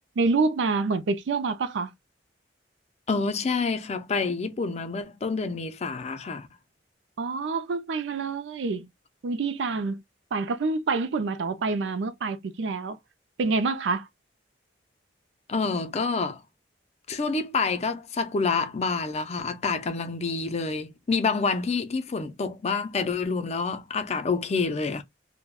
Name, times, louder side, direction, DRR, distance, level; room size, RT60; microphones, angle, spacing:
voice 1, 0.2-1.9 7.2-8.9 9.2-10.0 10.3-13.0 13.4-14.1, right 4 dB, 80° right, 0.4 m, -27 dB
voice 2, 3.1-6.5 15.5-16.4 17.1-25.0, left 4 dB, 35° left, 0.4 m, -28 dB
2.3 x 2.1 x 3.4 m
head